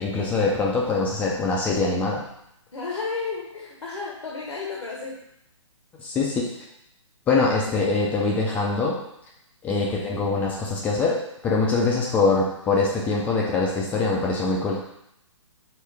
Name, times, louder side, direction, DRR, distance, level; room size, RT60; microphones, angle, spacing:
voice 1, 0.0-2.2 6.0-6.5 7.3-9.0 9.6-11.2 11.4-14.8, left 3 dB, 10° left, -3 dB, 0.4 m, -23 dB
voice 2, 2.7-5.2 9.7-9.9, left 4 dB, 85° left, -2 dB, 1.1 m, -32 dB
4.8 x 3.2 x 3.3 m, 0.79 s
hypercardioid pair, 145°, 17 cm